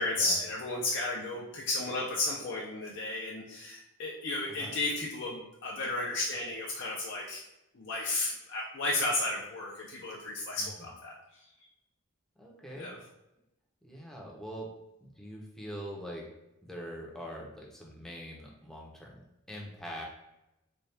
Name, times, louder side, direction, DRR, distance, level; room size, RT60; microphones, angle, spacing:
voice 1, 0.0-7.4 7.7-11.4 12.8-13.0, left 2 dB, 50° left, -3 dB, 0.5 m, -33 dB
voice 2, 4.4-4.8 10.6-10.9 12.4-12.9 13.8-14.7 15.0-16.2 16.6-19.2 19.5-20.0, equal, ahead, -2 dB, 0.6 m, -43 dB
4.1 x 2.3 x 3.3 m, 0.90 s
head